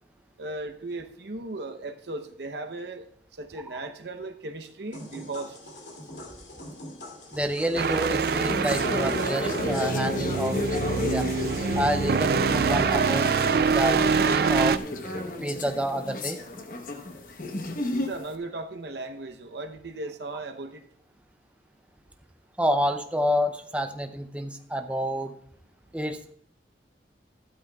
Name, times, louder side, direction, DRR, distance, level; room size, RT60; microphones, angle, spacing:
voice 1, 0.4-3.1 3.3-5.6 17.9-20.8, right 2 dB, 70° right, 6 dB, 0.8 m, -37 dB
sound 1, 4.9-11.6, left 1 dB, 85° left, 2.5 m, -43 dB
voice 2, 7.3-10.8 11.1-11.3 11.7-13.3 13.7-14.8 15.4-16.4 22.6-25.3 25.9-26.3, equal, 5° right, 6 dB, 0.5 m, -28 dB
sound 2, 7.8-18.3, left 2 dB, 50° left, 0.9 m, -32 dB
sound 3, 7.8-14.8, right 5 dB, 55° right, 0.3 m, -25 dB
12.5 x 12.0 x 2.3 m, 0.68 s
head